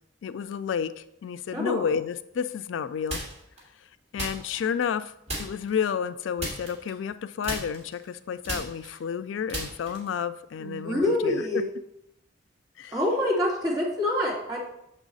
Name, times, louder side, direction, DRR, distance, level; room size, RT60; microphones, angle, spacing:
voice 1, 0.2-3.2 4.1-5.1 5.4-11.6 12.8-13.0, left 7 dB, 90° left, 13 dB, 0.3 m, -31 dB
voice 2, 1.5-1.8 10.6-11.6 12.9-14.6, left 1 dB, 20° right, -5 dB, 2.4 m, -26 dB
sound 1, 3.1-3.6 4.2-5.0 5.3-5.8 6.4-7.2 7.4-10.2, right 1 dB, 35° right, 2.7 m, -35 dB
7.1 x 5.5 x 4.0 m, 0.80 s
head